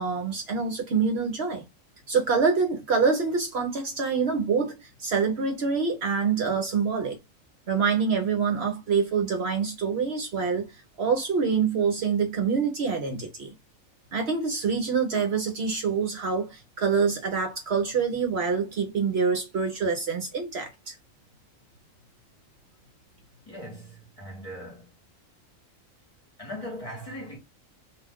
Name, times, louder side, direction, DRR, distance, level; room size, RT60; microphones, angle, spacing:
voice 1, 0.0-1.6 2.1-7.2 7.7-10.7 11.0-13.5 14.1-20.9, right 5 dB, 60° right, 0.8 m, -26 dB
voice 2, 23.5-24.9 26.4-27.4, equal, 30° left, 1.1 m, -39 dB
2.4 x 2.3 x 3.4 m
omnidirectional pair, 1.4 m